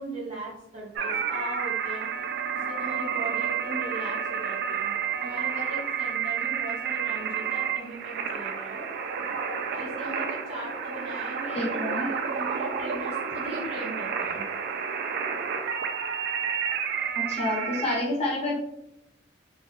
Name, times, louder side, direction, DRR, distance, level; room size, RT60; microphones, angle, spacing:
voice 1, 0.0-2.1 2.5-4.9 5.2-8.9 9.7-14.4, right 1 dB, 35° right, -9 dB, 1.0 m, -39 dB
sound 1, 1.0-18.0, right 7 dB, 60° right, 0.3 m, -30 dB
voice 2, 11.5-12.1 17.1-18.6, left 1 dB, 35° left, -3 dB, 0.6 m, -28 dB
3.0 x 2.2 x 3.0 m, 0.85 s
head